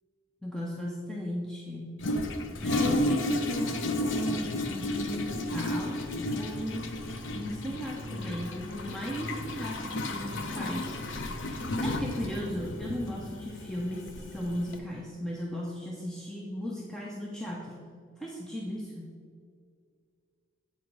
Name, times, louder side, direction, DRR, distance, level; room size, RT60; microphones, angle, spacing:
voice 1, 0.4-2.0 2.6-11.0 11.3-17.9 18.2-19.1, equal, 5° left, -3 dB, 0.7 m, -36 dB
Toilet flush, 2.0-14.8, left 1 dB, 65° left, 0.7 m, -33 dB
8.3 x 4.9 x 5.4 m, 2.2 s
head